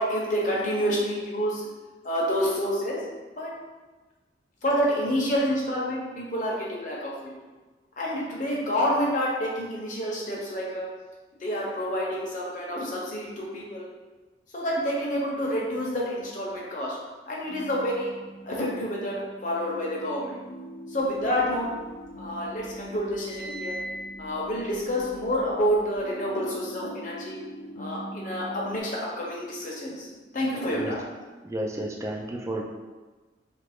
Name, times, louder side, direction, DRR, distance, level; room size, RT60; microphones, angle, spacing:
voice 1, 0.0-1.7 2.0-3.0 3.4-3.5 4.6-7.3 8.0-10.9 11.4-13.8 14.5-17.0 17.3-18.1 18.4-20.4 20.9-21.7 22.2-23.7 24.2-27.4 27.8-30.1 30.3-31.1, equal, 45° left, -4 dB, 0.8 m, -28 dB
sound 1, 17.5-28.8, right 1 dB, 90° left, 0.6 m, -43 dB
sound 2, 21.2-22.2 22.6-26.0, equal, 65° right, 0.7 m, -41 dB
voice 2, 31.4-32.6, right 1 dB, 15° right, 0 dB, 0.3 m, -32 dB
3.0 x 2.5 x 3.4 m, 1.3 s
head